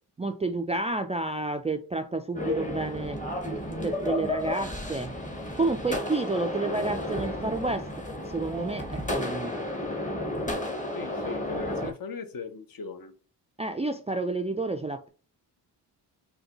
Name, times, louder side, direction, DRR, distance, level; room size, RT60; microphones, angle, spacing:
voice 1, 0.2-3.2 3.8-5.1 5.6-7.9 8.2-9.5 13.6-15.1, right 2 dB, 15° right, 0.3 m, -30 dB
sound 1, 2.3-11.9, left 1 dB, 20° left, 0.9 m, -32 dB
voice 2, 10.9-13.1, left 5 dB, 50° left, 0.8 m, -38 dB
5.3 x 2.2 x 2.8 m
cardioid pair, 65°, 42 cm